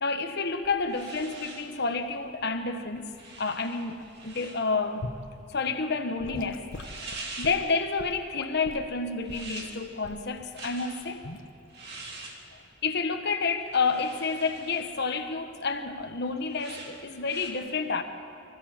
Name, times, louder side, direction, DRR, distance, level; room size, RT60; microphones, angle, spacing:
voice 1, 0.0-3.1 3.4-5.1 5.5-11.2 12.8-18.0, left 4 dB, 60° left, 7 dB, 1.4 m, -30 dB
sound 1, 0.6-17.5, right 2 dB, 60° right, 2.8 m, -46 dB
Gurgling / Sink (filling or washing) / Liquid, 5.0-5.3 6.2-8.9 9.3-9.5 10.0-10.3 11.2-11.5, left 2 dB, 85° left, 1.2 m, -40 dB
24.5 x 15.5 x 7.5 m, 2.7 s
head